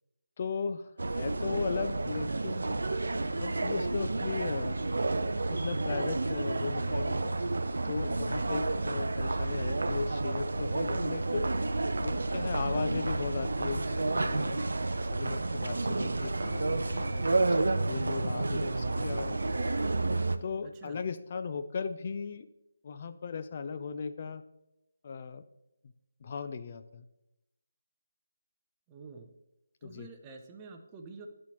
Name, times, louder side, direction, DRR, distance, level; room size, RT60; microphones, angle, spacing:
voice 1, 0.4-2.7 3.4-4.8 5.5-7.3 7.8-11.5 12.0-14.6 15.0-19.7 20.4-22.5 22.8-24.4 25.0-25.4 26.2-27.1 29.8-30.1, left 5 dB, 40° left, 10 dB, 0.3 m, -37 dB
sound 1, 1.0-20.4, right 2 dB, 70° right, 0.4 m, -30 dB
voice 2, 20.6-21.0 28.9-29.3 29.8-31.3, right 4 dB, 20° right, 4 dB, 0.5 m, -48 dB
10.5 x 4.3 x 3.0 m, 0.90 s
figure-of-eight pair, 155°, 0 cm